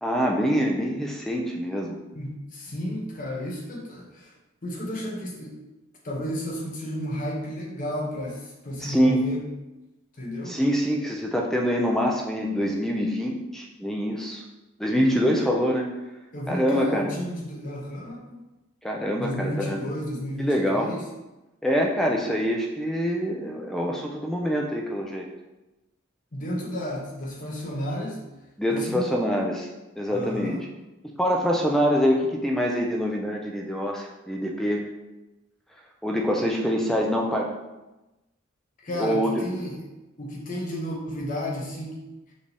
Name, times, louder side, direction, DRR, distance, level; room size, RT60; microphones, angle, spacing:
voice 1, 0.0-2.0 8.8-9.2 10.5-14.4 14.8-15.9 16.5-17.1 18.8-19.8 20.4-20.9 21.6-25.3 28.6-29.7 30.0-30.6 31.2-34.8 36.0-37.5 38.9-39.4, equal, ahead, 0 dB, 0.3 m, -25 dB
voice 2, 2.1-4.3 4.6-5.6 6.0-9.4 10.2-10.6 14.9-15.4 16.3-18.4 19.1-21.0 26.3-28.2 28.7-29.2 30.1-30.6 38.8-39.9 40.2-42.0, equal, 40° left, -2 dB, 0.9 m, -32 dB
5.2 x 2.6 x 3.3 m, 1.0 s
head